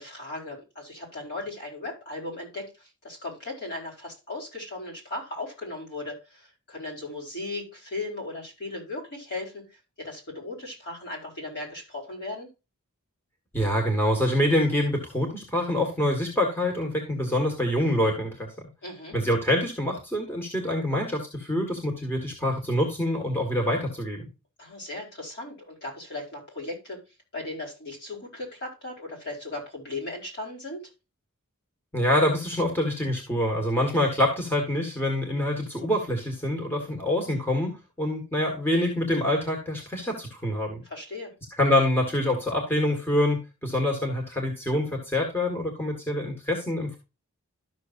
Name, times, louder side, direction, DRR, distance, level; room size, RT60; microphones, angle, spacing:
voice 1, 0.0-12.5 18.8-19.2 24.6-27.0 27.3-30.8 40.8-41.3, left 2 dB, 50° left, -1 dB, 4.6 m, -37 dB
voice 2, 13.5-18.5 19.1-24.3 31.9-40.8 41.6-47.0, left 1 dB, 10° left, 0 dB, 1.9 m, -26 dB
13.0 x 6.6 x 2.6 m, 0.27 s
head